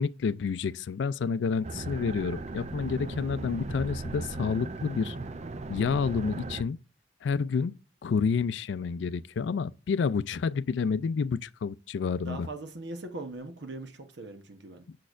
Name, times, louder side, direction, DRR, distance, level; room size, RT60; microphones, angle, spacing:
voice 1, 0.0-5.2 5.7-6.8 7.2-12.5, left 5 dB, 70° left, 0.3 m, -29 dB
sound 1, 1.6-6.6, right 2 dB, 35° right, 0.5 m, -37 dB
voice 2, 12.2-14.9, right 2 dB, 65° right, 1.0 m, -40 dB
6.6 x 6.2 x 2.5 m
head